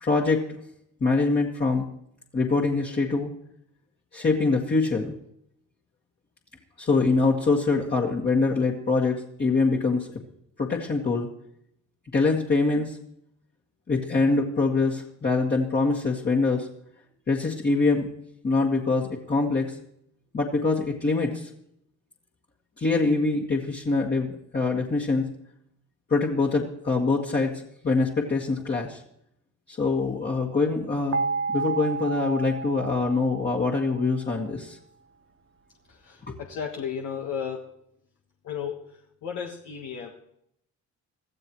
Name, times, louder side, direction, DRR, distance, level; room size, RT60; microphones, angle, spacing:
voice 1, 0.0-0.5 1.0-1.8 2.3-3.3 4.1-5.2 6.8-10.1 10.6-11.3 12.1-13.0 13.9-16.7 17.3-18.1 18.4-19.7 20.3-21.5 22.8-24.3 24.5-25.3 26.1-27.5 27.8-29.0 29.7-31.2 31.5-34.8 36.3-36.4, left 3 dB, 35° left, -2 dB, 1.9 m, -24 dB
sound 1, 31.1-34.1, right 4 dB, 45° right, 0.8 m, -31 dB
voice 2, 36.1-37.6 38.4-38.8 39.2-40.1, left 7 dB, 80° left, 1 dB, 1.5 m, -33 dB
22.0 x 14.5 x 3.1 m, 0.74 s
cardioid pair, 90°, 30 cm